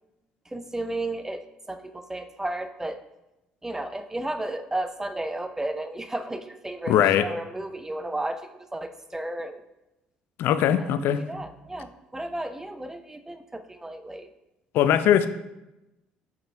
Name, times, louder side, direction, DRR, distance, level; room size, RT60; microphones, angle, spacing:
voice 1, 0.5-3.0 3.6-9.6 10.8-10.9 11.3-14.3, right 1 dB, 10° right, 9 dB, 0.6 m, -33 dB
voice 2, 6.9-7.3 10.4-11.2 14.7-15.3, left 10 dB, 60° left, 12 dB, 0.4 m, -20 dB
5.7 x 5.2 x 3.3 m, 0.95 s
hypercardioid pair, 55°, 4 cm